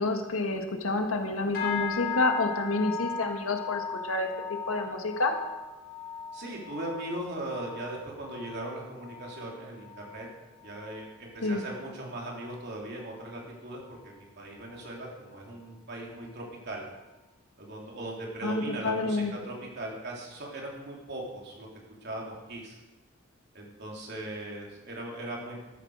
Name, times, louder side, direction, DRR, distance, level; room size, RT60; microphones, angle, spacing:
voice 1, 0.0-5.3 11.4-11.6 18.4-19.3, left 2 dB, 85° left, 4 dB, 1.6 m, -29 dB
sound 1, 1.5-11.1 11.4-11.8 12.2-12.6 13.1-13.2, left 7 dB, 55° left, 5.0 m, -38 dB
voice 2, 6.3-10.3 10.6-16.9 17.6-21.7 22.0-22.8 23.5-25.6, right 1 dB, 55° right, -2 dB, 3.3 m, -39 dB
13.5 x 11.5 x 4.9 m, 1.1 s
head